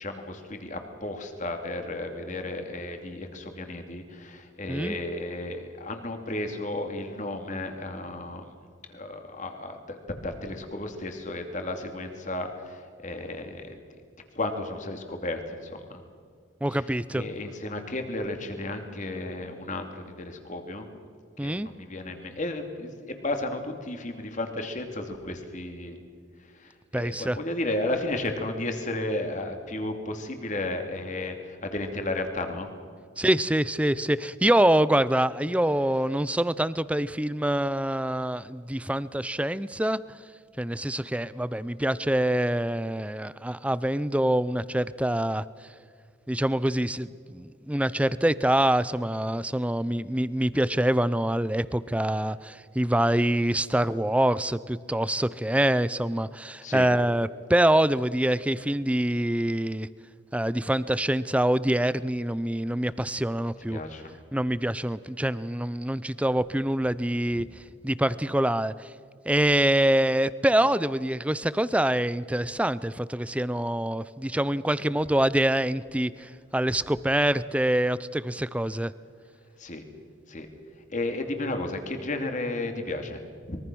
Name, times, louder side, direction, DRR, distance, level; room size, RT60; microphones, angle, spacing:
voice 1, 0.0-8.5 8.9-13.8 14.3-16.0 16.7-20.9 21.4-26.0 26.5-32.7 56.6-56.9 63.7-64.1 79.6-79.8 80.3-80.5 80.9-83.2 83.5-83.6, left 2 dB, 40° left, 5 dB, 2.7 m, -33 dB
voice 2, 16.6-17.2 21.4-21.7 26.9-27.4 33.2-40.0 40.6-45.4 46.3-59.9 60.3-63.8 64.3-67.5 67.8-68.9 69.3-78.9, right 1 dB, 5° right, 16 dB, 0.5 m, -25 dB
24.0 x 22.5 x 6.2 m, 2.2 s
head